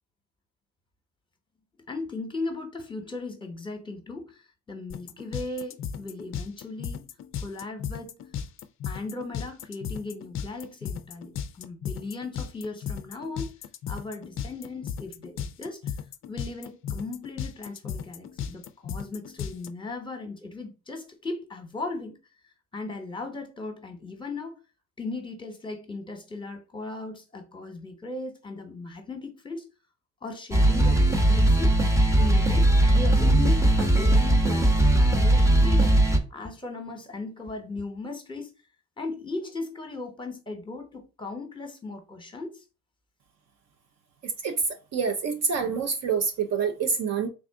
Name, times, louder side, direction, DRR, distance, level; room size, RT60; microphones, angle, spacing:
voice 1, 1.9-7.0 7.4-8.2 8.8-13.5 13.9-16.0 16.3-22.2 22.4-24.5 25.0-29.7 30.2-31.7 32.2-36.0 36.3-38.5 39.0-42.6, left 3 dB, 15° left, 1.0 m, -37 dB
sound 1, 4.9-19.7, left 8 dB, 35° left, 0.4 m, -35 dB
sound 2, 30.5-36.2, right 1 dB, 10° right, 0.7 m, -19 dB
voice 2, 44.9-47.3, right 5 dB, 45° right, 0.5 m, -26 dB
3.5 x 2.4 x 3.5 m
supercardioid pair, 85°, 36 cm